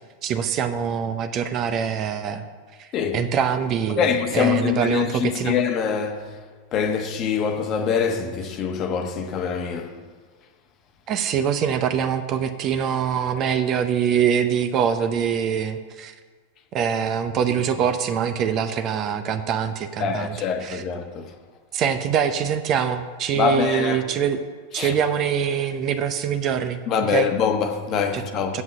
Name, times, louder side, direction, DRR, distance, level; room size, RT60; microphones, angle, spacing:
voice 1, 0.2-2.4 2.8-2.9 3.1-5.6 11.1-16.1 16.7-20.8 21.7-24.4 24.7-27.3 28.1-28.2 28.5-28.6, right 8 dB, 35° right, 0.7 m, -24 dB
voice 2, 4.0-6.3 6.7-9.9 20.0-21.3 23.3-24.0 24.8-24.9 26.9-28.6, left 7 dB, 35° left, 1.1 m, -24 dB
7.8 x 7.5 x 8.4 m
figure-of-eight pair, 90°, 0 cm